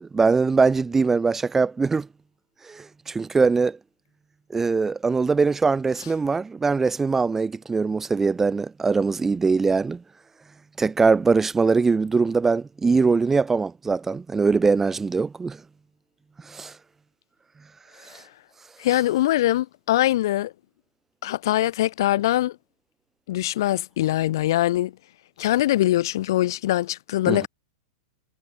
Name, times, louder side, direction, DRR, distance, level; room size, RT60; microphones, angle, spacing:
voice 1, 0.0-2.1 2.7-3.8 4.5-10.0 10.8-15.6 16.5-16.7 27.3-27.5, right 4 dB, 15° right, 0.4 m, -22 dB
voice 2, 18.8-20.5 21.2-22.5 23.3-24.9 25.4-27.5, left 14 dB, 65° left, 1.5 m, -22 dB
hypercardioid pair, 100°, 2 cm